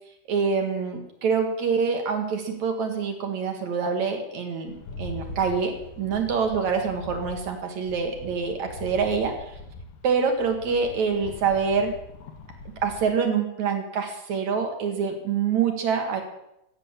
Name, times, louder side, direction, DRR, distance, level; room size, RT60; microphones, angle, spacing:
voice 1, 0.3-9.3 10.0-12.0 12.8-16.2, right 5 dB, 60° right, 4 dB, 2.3 m, -26 dB
Rattle, 4.7-13.1, left 2 dB, 70° left, 3.0 m, -41 dB
15.0 x 8.0 x 7.2 m, 0.83 s
omnidirectional pair, 4.4 m